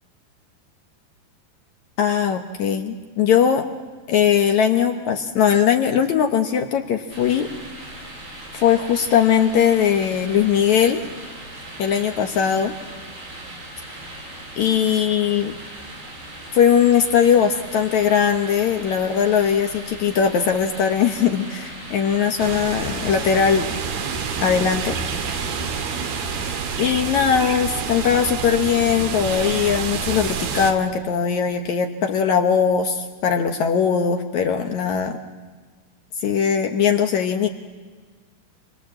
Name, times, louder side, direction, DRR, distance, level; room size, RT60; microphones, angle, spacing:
voice 1, 2.0-3.6 4.1-7.5 8.5-11.0 11.8-12.7 14.6-15.5 16.5-23.7 24.4-25.0 25.2-25.5 26.8-35.2 36.2-37.5, left 8 dB, 70° left, 5 dB, 1.8 m, -20 dB
sound 1, 7.1-26.8, right 1 dB, 85° right, 10.0 m, -38 dB
sound 2, 22.4-30.7, right 6 dB, 70° right, 3.5 m, -28 dB
27.5 x 23.5 x 7.6 m, 1.5 s
omnidirectional pair, 4.6 m